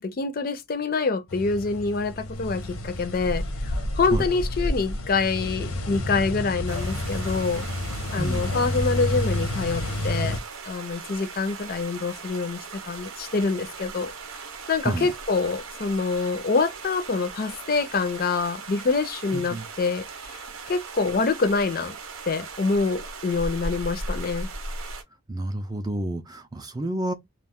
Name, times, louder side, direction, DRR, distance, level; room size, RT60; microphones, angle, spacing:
voice 1, 0.0-7.6 8.1-10.4 10.7-14.4 14.7-22.0 22.3-24.5, left 4 dB, 45° left, 0.4 m, -26 dB
sound 1, 1.3-10.4, left 1 dB, 85° left, 0.7 m, -29 dB
sound 2, 6.7-25.0, right 3 dB, 80° right, 0.7 m, -38 dB
voice 2, 8.2-8.5 14.8-15.1 19.3-19.7 25.3-27.1, right 2 dB, 20° right, 0.3 m, -29 dB
2.4 x 2.2 x 3.4 m
head